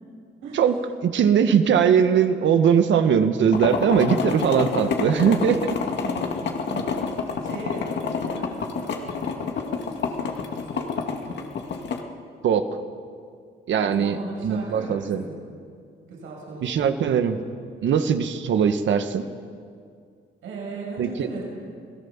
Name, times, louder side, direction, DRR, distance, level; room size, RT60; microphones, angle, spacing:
voice 1, 0.5-5.7 12.4-12.7 13.7-15.2 16.6-17.4 17.8-19.2 21.0-21.4, right 7 dB, 70° right, 9 dB, 1.6 m, -20 dB
sound 1, 3.5-12.0, left 5 dB, 60° left, 2.3 m, -28 dB
voice 2, 6.0-11.5 13.8-15.3 16.0-17.2 20.4-21.4, right 3 dB, 85° right, -2 dB, 6.8 m, -38 dB
28.0 x 17.5 x 7.3 m, 2.2 s
cardioid pair, 90°, 20 cm